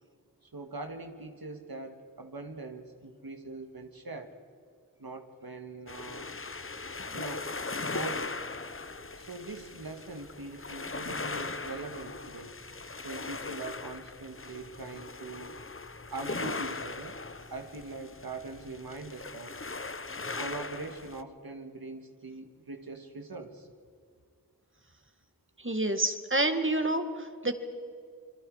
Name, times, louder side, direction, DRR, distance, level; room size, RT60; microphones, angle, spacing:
voice 1, 0.4-4.3 5.0-6.3 7.1-7.5 7.8-8.4 9.2-12.5 13.0-15.6 16.1-17.2 17.5-19.6 20.3-23.7, right 3 dB, 85° right, 5 dB, 2.0 m, -42 dB
sound 1, 5.9-21.2, left 3 dB, 35° left, 0.9 m, -39 dB
voice 2, 25.6-27.5, right 1 dB, 35° right, 7 dB, 2.1 m, -28 dB
28.0 x 22.5 x 4.9 m, 2.2 s
wide cardioid pair, 40°, 35 cm